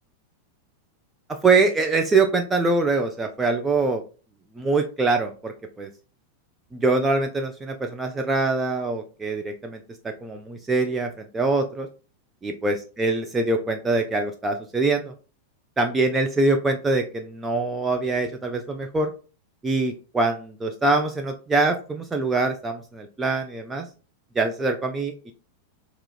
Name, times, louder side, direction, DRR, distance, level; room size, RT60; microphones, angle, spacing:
voice 1, 1.4-4.0 4.6-5.9 6.7-9.8 10.0-11.9 12.4-15.1 15.8-19.1 19.6-23.9 24.4-25.3, right 3 dB, 15° right, 4 dB, 0.4 m, -24 dB
4.7 x 2.9 x 2.2 m, 0.35 s
figure-of-eight pair, 90°, 0 cm